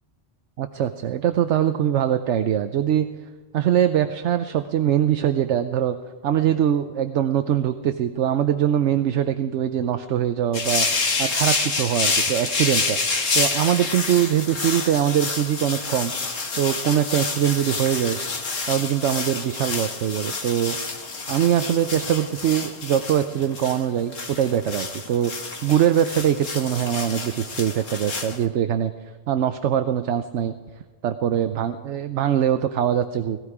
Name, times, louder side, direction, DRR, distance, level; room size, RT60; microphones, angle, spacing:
voice 1, 0.6-3.1 3.5-6.0 6.2-13.0 13.3-16.1 16.6-18.2 18.7-20.8 21.3-28.9 29.3-30.5 31.0-33.4, right 10 dB, 70° right, 9 dB, 1.0 m, -22 dB
sound 1, 10.5-28.4, left 4 dB, 90° left, 2.0 m, -28 dB
18.0 x 14.0 x 4.8 m, 1.3 s
omnidirectional pair, 1.3 m